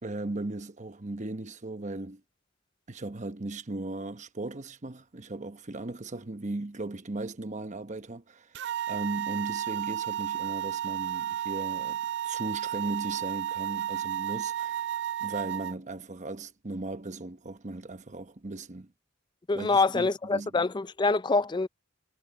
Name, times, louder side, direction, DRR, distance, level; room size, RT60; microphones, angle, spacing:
voice 1, 0.0-2.2 2.9-8.6 8.9-18.9 19.5-20.7, right 2 dB, 40° right, 1.0 m, -37 dB
sound 1, 8.5-15.7, right 11 dB, 60° right, 0.5 m, -32 dB
voice 2, 19.5-21.7, left 3 dB, 25° left, 0.4 m, -25 dB
head